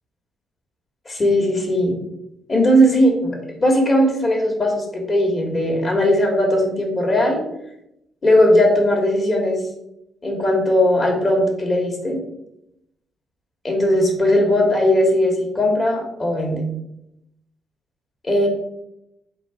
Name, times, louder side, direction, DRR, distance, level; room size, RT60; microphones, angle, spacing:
voice 1, 1.1-1.9 2.5-7.4 8.2-9.6 10.2-12.2 13.6-16.6 18.2-18.5, left 1 dB, 30° left, 0 dB, 1.4 m, -18 dB
3.8 x 2.7 x 4.7 m, 0.81 s
cardioid pair, 90°, 0 cm